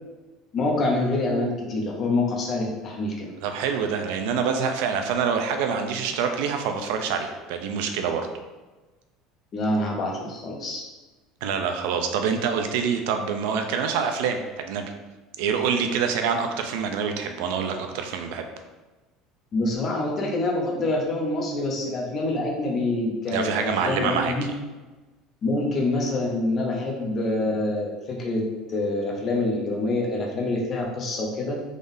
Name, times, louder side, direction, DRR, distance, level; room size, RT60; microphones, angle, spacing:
voice 1, 0.5-3.3 9.5-10.8 19.5-24.5 25.4-31.6, left 2 dB, 30° left, 0 dB, 0.6 m, -26 dB
voice 2, 3.4-8.3 11.4-14.9 15.4-18.4 23.3-24.3, right 6 dB, 80° right, 5 dB, 0.4 m, -26 dB
3.7 x 3.5 x 2.6 m, 1.2 s
cardioid pair, 165°, 0 cm